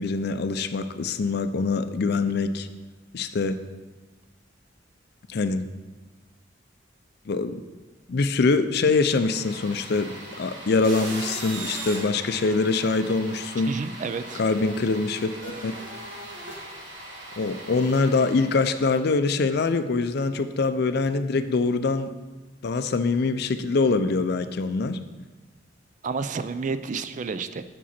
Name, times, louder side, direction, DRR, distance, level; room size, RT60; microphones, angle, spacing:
voice 1, 0.0-2.7 3.1-3.6 5.3-5.7 7.3-7.6 8.1-13.7 14.3-15.7 17.4-22.1 22.6-25.0, left 3 dB, 55° left, 11 dB, 0.5 m, -24 dB
sound 1, 8.9-19.1, right 1 dB, 70° right, 2.0 m, -39 dB
voice 2, 13.7-14.4 26.0-27.6, right 4 dB, 40° right, 12 dB, 0.4 m, -30 dB
7.4 x 6.9 x 4.3 m, 1.2 s
head